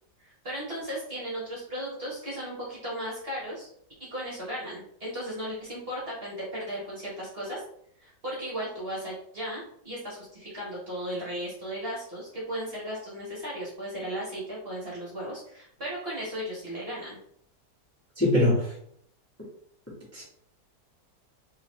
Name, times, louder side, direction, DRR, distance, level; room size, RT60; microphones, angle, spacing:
voice 1, 0.2-3.7 4.1-7.6 8.0-17.2, equal, 35° right, -6 dB, 1.4 m, -36 dB
voice 2, 18.2-18.7 20.1-20.2, left 1 dB, 10° left, -8 dB, 1.3 m, -22 dB
3.8 x 3.2 x 3.1 m, 0.67 s
omnidirectional pair, 1.8 m